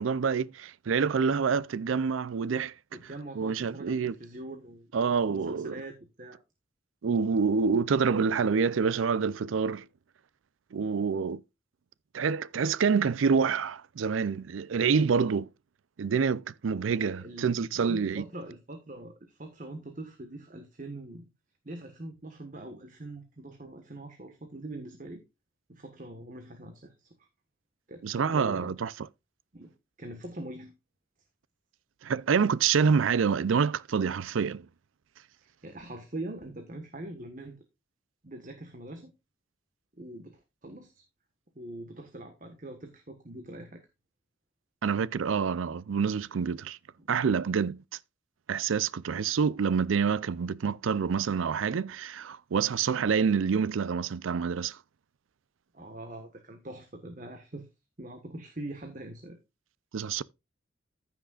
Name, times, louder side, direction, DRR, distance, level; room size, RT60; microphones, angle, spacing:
voice 1, 0.0-2.7 3.4-4.1 4.9-5.8 7.0-9.8 10.7-11.4 12.1-15.5 16.0-18.2 28.0-28.9 32.0-34.7 44.8-46.8 47.1-47.8 48.5-54.8 59.9-60.2, right 6 dB, 85° right, 0.4 m, -27 dB
voice 2, 2.9-4.9 5.3-6.4 10.8-11.0 17.0-21.3 21.6-25.2 25.7-27.3 27.9-28.7 29.5-30.7 35.6-37.6 38.2-39.1 40.0-41.0 41.5-43.8 47.0-47.1 55.7-57.7 58.0-59.4, right 1 dB, 40° right, 1.3 m, -43 dB
15.0 x 6.2 x 2.4 m
head